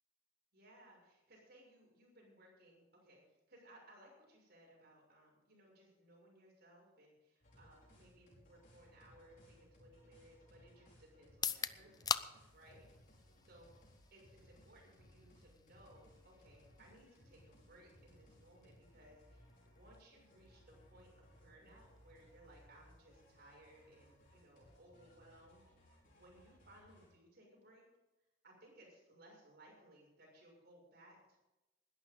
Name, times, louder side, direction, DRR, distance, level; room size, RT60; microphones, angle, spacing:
voice 1, 0.5-3.2 3.5-12.2 12.5-12.9 13.5-13.7 14.1-25.6 26.1-27.8 28.4-31.4, right 1 dB, 50° right, -2 dB, 6.8 m, -63 dB
sound 1, 7.4-27.1, equal, 45° left, 5.2 m, -65 dB
sound 2, 11.3-25.1, left 6 dB, 20° left, 0.4 m, -48 dB
20.5 x 12.0 x 3.9 m, 0.98 s
head